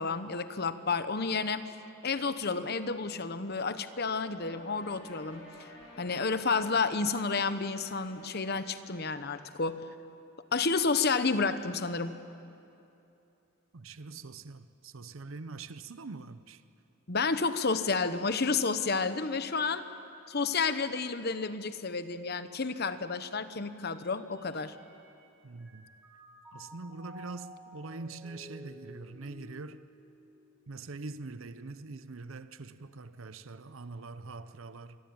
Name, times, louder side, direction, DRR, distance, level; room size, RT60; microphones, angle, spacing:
voice 1, 0.0-1.7 2.0-5.4 6.0-9.8 10.5-12.2 17.1-19.9 20.3-24.7, left 4 dB, 50° left, 1.0 m, -30 dB
sound 1, 4.3-9.4, left 1 dB, 75° left, 7.4 m, -52 dB
voice 2, 13.7-16.6 25.4-25.9 26.5-29.8 30.7-35.0, right 3 dB, 70° right, 0.7 m, -43 dB
Mallet percussion, 24.3-25.2 25.6-31.0, equal, 10° right, 6.3 m, -53 dB
26.5 x 21.0 x 8.8 m
head